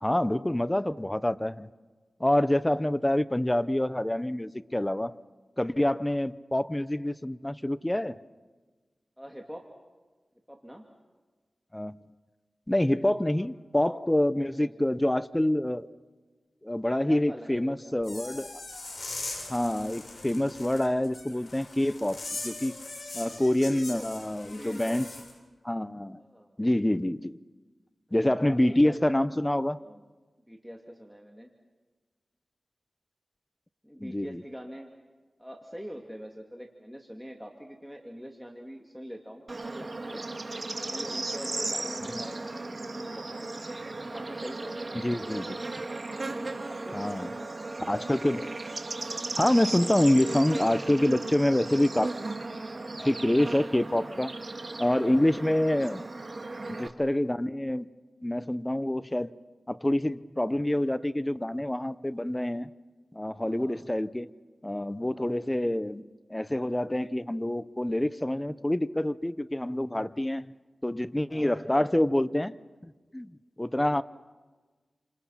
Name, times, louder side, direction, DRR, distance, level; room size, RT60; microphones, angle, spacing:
voice 1, 0.0-1.7 2.2-5.2 5.6-8.2 11.7-12.1 12.7-15.9 16.6-18.5 19.5-22.7 23.1-25.1 25.6-26.2 26.6-27.4 28.1-29.8 34.0-34.4 44.9-45.6 46.9-47.3 47.9-48.6 49.4-52.1 53.0-54.4 54.8-56.0 56.7-57.9 58.2-59.3 59.7-62.7 63.1-64.3 64.6-66.0 66.3-70.5 70.8-72.6 72.8-73.3 73.6-74.0, left 1 dB, 15° left, 15 dB, 0.8 m, -27 dB
voice 2, 9.2-9.7 10.5-10.9 13.3-13.5 14.4-14.7 17.0-17.9 23.7-24.1 24.4-25.0 26.2-26.5 28.1-29.0 29.8-30.0 30.5-31.5 33.8-34.9 35.4-40.3 40.8-42.5 42.8-43.4 44.1-45.0 46.6-47.5 55.1-55.6 63.4-63.8 65.0-65.3 71.3-71.9 74.0-74.1, equal, ahead, 1 dB, 2.6 m, -44 dB
sound 1, 18.0-25.3, left 2 dB, 55° left, 7.4 m, -41 dB
Bird / Insect, 39.5-56.9, right 2 dB, 45° right, 2.2 m, -36 dB
30.0 x 26.5 x 5.8 m, 1.3 s
wide cardioid pair, 70°, 0 cm